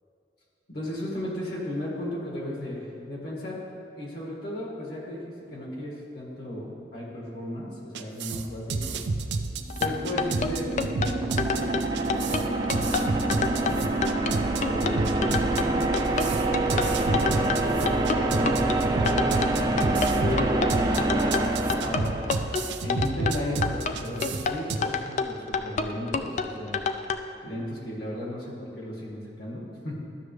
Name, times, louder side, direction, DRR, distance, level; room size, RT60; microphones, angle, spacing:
voice 1, 0.7-3.6 3.9-8.9 9.8-11.8 12.1-13.8 14.6-17.5 18.3-19.2 19.8-22.1 22.8-26.8 27.4-30.0, left 1 dB, 65° left, -4 dB, 1.9 m, -35 dB
sound 1, 7.9-24.8, right 3 dB, 85° right, 0.5 m, -31 dB
sound 2, 9.6-22.7, right 2 dB, 25° right, 0.6 m, -26 dB
sound 3, 9.7-27.2, left 5 dB, 45° left, 0.4 m, -29 dB
12.5 x 6.3 x 3.3 m, 2.6 s
head